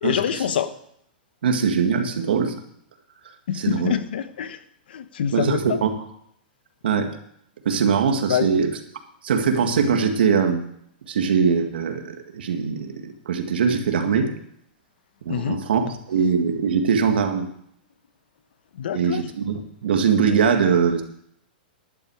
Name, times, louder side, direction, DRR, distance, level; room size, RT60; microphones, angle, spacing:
voice 1, 0.0-0.7 3.5-4.6 4.9-5.8 8.3-8.5 15.3-15.6 18.7-19.2, left 9 dB, 75° left, 12 dB, 1.1 m, -25 dB
voice 2, 1.4-2.5 3.5-4.0 5.3-5.9 6.8-7.1 7.7-8.7 9.2-10.6 11.1-14.3 15.3-17.5 18.9-21.0, right 6 dB, 80° right, 5 dB, 2.1 m, -21 dB
11.5 x 11.5 x 4.9 m, 0.71 s
hypercardioid pair, 150°, 5 cm